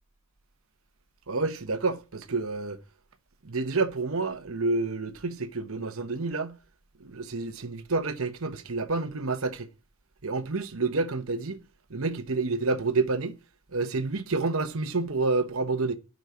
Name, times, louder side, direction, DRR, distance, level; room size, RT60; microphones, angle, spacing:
voice 1, 1.3-2.8 3.4-6.6 7.0-9.7 10.2-11.6 11.9-13.4 13.7-16.0, right 3 dB, 70° right, 1.0 m, -29 dB
11.0 x 5.3 x 4.7 m
head